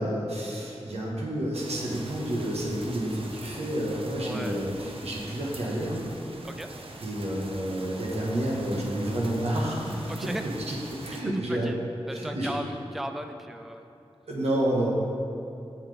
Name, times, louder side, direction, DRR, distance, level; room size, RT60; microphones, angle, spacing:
voice 1, 0.0-6.0 7.0-10.0 10.7-11.7 12.1-12.5 14.3-14.9, right 1 dB, 80° right, -3 dB, 1.3 m, -29 dB
sound 1, 1.5-11.2, right 2 dB, 60° right, 0.8 m, -43 dB
voice 2, 4.2-4.6 6.4-6.7 10.1-10.4 11.5-11.8 12.1-13.9, right 1 dB, ahead, 6 dB, 0.4 m, -36 dB
7.3 x 7.2 x 3.4 m, 2.7 s
cardioid pair, 50°, 11 cm